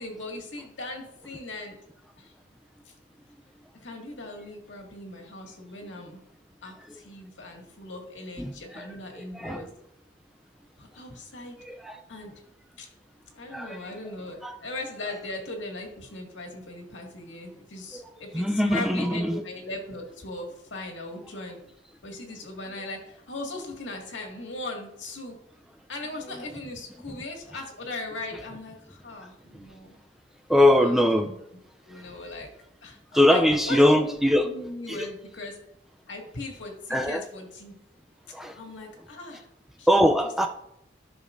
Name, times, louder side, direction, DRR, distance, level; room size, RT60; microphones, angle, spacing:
voice 1, 0.0-1.7 2.2-2.3 2.8-2.9 3.8-6.2 6.6-9.7 10.8-11.6 12.1-12.3 12.8-12.9 13.3-21.6 22.0-25.4 25.9-30.0 30.8-31.3 31.8-32.5 32.8-35.6 36.1-37.7 38.6-39.5 39.8-40.1 40.4-40.5, left 2 dB, 85° left, 1 dB, 2.0 m, -39 dB
voice 2, 8.4-8.9 9.2-9.6 11.6-12.0 13.5-13.9 14.4-14.6 17.9-18.0 18.3-19.4 30.5-31.3 31.9-32.0 33.1-34.5 34.9-35.1 36.9-37.2 38.3-38.6 39.9-40.5, left 1 dB, ahead, 5 dB, 0.4 m, -22 dB
12.5 x 6.2 x 2.6 m, 0.78 s
head